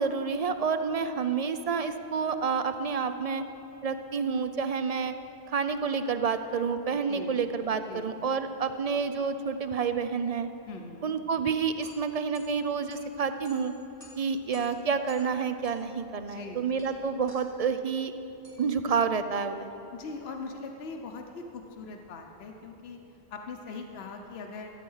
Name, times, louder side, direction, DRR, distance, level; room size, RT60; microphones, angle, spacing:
voice 1, 0.0-3.4 3.8-5.1 5.5-10.5 11.0-13.7 14.2-18.1 18.6-19.7, right 5 dB, 50° right, 9 dB, 0.5 m, -29 dB
voice 2, 10.7-11.2 16.1-16.6 19.9-23.0 23.3-24.7, left 4 dB, 75° left, 3 dB, 1.0 m, -41 dB
sound 1, 11.5-20.5, equal, 30° right, 3.0 m, -56 dB
13.5 x 9.0 x 5.5 m, 2.9 s
omnidirectional pair, 1.1 m